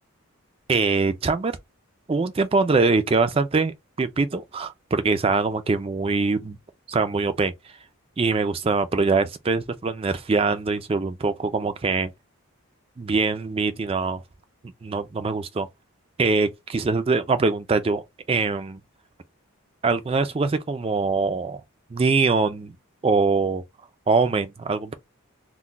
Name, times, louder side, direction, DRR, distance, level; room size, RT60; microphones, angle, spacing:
voice 1, 0.7-1.5 2.1-6.6 6.9-7.5 8.2-12.1 13.0-14.2 14.8-15.7 16.2-18.0 18.3-18.8 19.8-21.6 21.9-22.7 23.0-23.6 24.1-24.9, right 4 dB, 25° right, 0.3 m, -23 dB
2.2 x 2.1 x 3.8 m
head